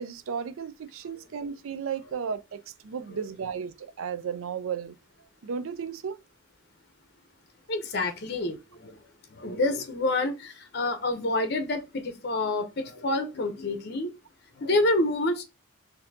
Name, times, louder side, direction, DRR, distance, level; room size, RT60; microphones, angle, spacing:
voice 1, 0.0-4.9 5.4-6.2, right 6 dB, 75° right, 0.4 m, -34 dB
voice 2, 7.7-9.0 9.3-14.1 14.6-15.4, left 2 dB, 50° left, 0.7 m, -28 dB
4.2 x 2.7 x 2.7 m
head